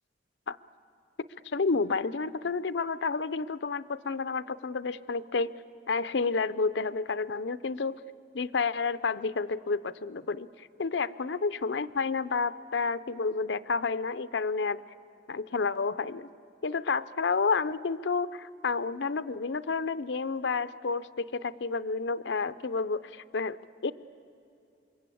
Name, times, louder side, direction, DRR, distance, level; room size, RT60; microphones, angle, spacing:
voice 1, 1.5-5.5 5.9-8.0 8.3-14.8 15.3-16.3 16.6-23.6 23.8-23.9, left 4 dB, 80° left, 13 dB, 0.6 m, -30 dB
27.5 x 23.0 x 8.5 m, 2.7 s
head